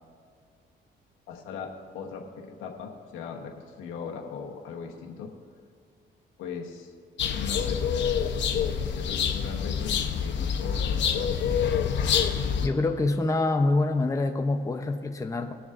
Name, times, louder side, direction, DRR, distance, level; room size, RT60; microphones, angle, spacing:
voice 1, 1.3-5.3 6.4-6.9 7.2-7.9 8.9-11.4, left 6 dB, 85° left, 1 dB, 1.1 m, -39 dB
sound 1, 7.2-12.7, left 7 dB, 65° left, 0.9 m, -26 dB
voice 2, 12.6-15.5, left 2 dB, 15° left, 5 dB, 0.7 m, -25 dB
20.5 x 7.0 x 2.5 m, 2.2 s
cardioid pair, 90°, 20 cm